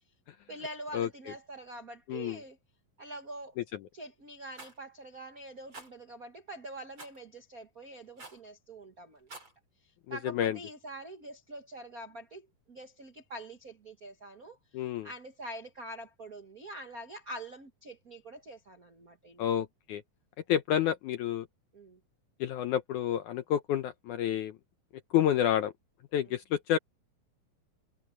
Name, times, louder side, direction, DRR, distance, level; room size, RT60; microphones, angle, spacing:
voice 1, 0.5-2.6 3.0-3.5 3.9-9.5 9.8-19.5 21.7-22.0 26.3-26.4, right 1 dB, 80° right, 0.7 m, -45 dB
Rattle, 4.5-4.8 5.7-5.9 7.0-7.2 8.2-8.5 9.1-9.5, right 2 dB, 30° right, 8.7 m, -47 dB
voice 2, 10.1-10.6 14.7-15.1 19.4-20.0 20.5-21.5 22.4-24.6 25.1-25.7 26.1-26.8, left 10 dB, 80° left, 1.8 m, -29 dB
omnidirectional pair, 4.3 m